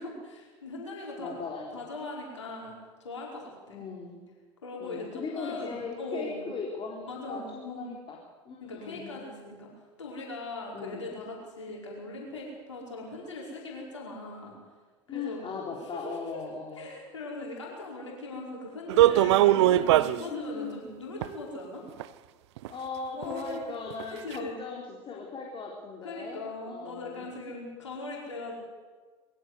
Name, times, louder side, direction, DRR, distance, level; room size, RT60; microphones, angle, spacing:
voice 1, 0.0-1.4 1.7-3.8 4.6-6.4 7.1-7.9 8.6-9.7 10.0-14.5 15.1-15.6 15.8-16.4 16.7-21.8 23.1-23.6 24.2-24.6 26.0-28.5, left 2 dB, 85° left, -2 dB, 5.0 m, -40 dB
voice 2, 1.2-1.8 3.7-4.2 4.8-8.2 8.5-9.1 10.7-11.2 15.1-16.8 20.3-20.8 22.6-27.2, left 4 dB, 35° left, -1 dB, 4.0 m, -38 dB
sound 1, 18.9-20.2 21.2-21.3 22.0-22.1 22.6-22.7 23.2-23.3 23.9-24.0 24.3-24.4, right 14 dB, 70° right, 0.7 m, -20 dB
22.0 x 15.5 x 8.2 m, 1.4 s
hypercardioid pair, 75°, 15 cm